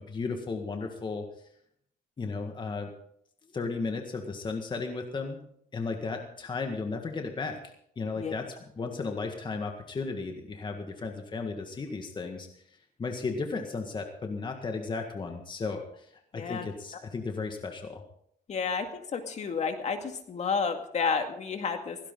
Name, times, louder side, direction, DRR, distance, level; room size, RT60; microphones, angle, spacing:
voice 1, 0.0-1.5 2.2-2.9 3.5-5.5 5.7-18.0, left 4 dB, 25° left, 4 dB, 1.8 m, -35 dB
voice 2, 16.3-16.7 18.5-18.9 19.1-22.0, left 5 dB, 45° left, 5 dB, 2.1 m, -30 dB
17.0 x 16.5 x 3.9 m, 0.70 s
cardioid pair, 110°, 17 cm